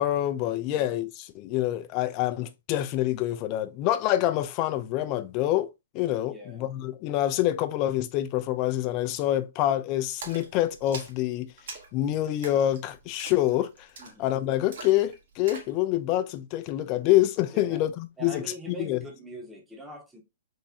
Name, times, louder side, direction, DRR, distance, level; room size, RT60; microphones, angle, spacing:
voice 1, 0.0-5.7 5.9-11.5 11.9-13.7 14.2-18.4 18.8-19.0, left 13 dB, 35° left, 0.5 m, -26 dB
voice 2, 6.3-6.7 14.0-14.3 17.5-17.9 18.2-20.2, right 1 dB, 5° right, 0.9 m, -42 dB
Splash splatter, 10.2-15.8, right 4 dB, 65° right, 1.3 m, -45 dB
3.6 x 3.0 x 2.7 m
hypercardioid pair, 145°, 0 cm